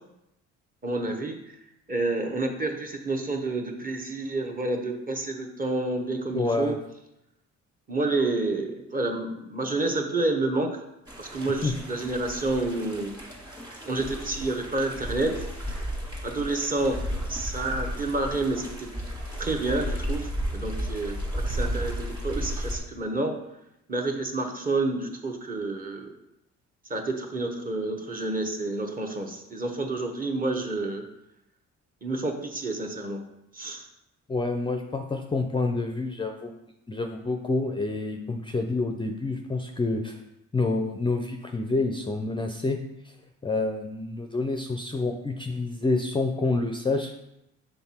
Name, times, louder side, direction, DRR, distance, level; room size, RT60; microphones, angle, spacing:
voice 1, 0.8-1.6 1.9-6.7 7.9-10.7 11.2-13.1 13.8-15.3 16.2-17.0 17.3-18.9 19.4-23.3 23.9-26.1 26.9-31.0 32.0-33.2 33.5-33.9, right 2 dB, 30° right, 3 dB, 1.0 m, -29 dB
voice 2, 6.3-6.8 11.6-11.7 34.3-36.5 36.9-40.2 40.5-43.1 43.4-47.1, left 3 dB, 15° left, 4 dB, 0.4 m, -28 dB
sound 1, 11.1-22.8, equal, 15° right, 1.6 m, -33 dB
5.7 x 3.8 x 4.3 m, 0.85 s
cardioid pair, 90°, 30 cm